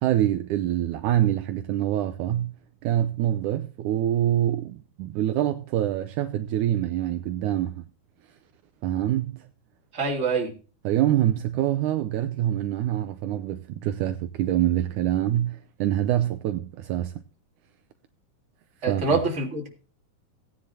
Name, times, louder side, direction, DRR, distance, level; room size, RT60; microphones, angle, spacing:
voice 1, 0.0-2.5 2.8-7.8 8.8-9.4 10.8-17.1 18.9-19.2, right 12 dB, 85° right, 1.8 m, -25 dB
voice 2, 9.9-10.5 18.8-19.7, right 3 dB, 20° right, 2.4 m, -25 dB
17.5 x 9.8 x 2.8 m
omnidirectional pair, 4.3 m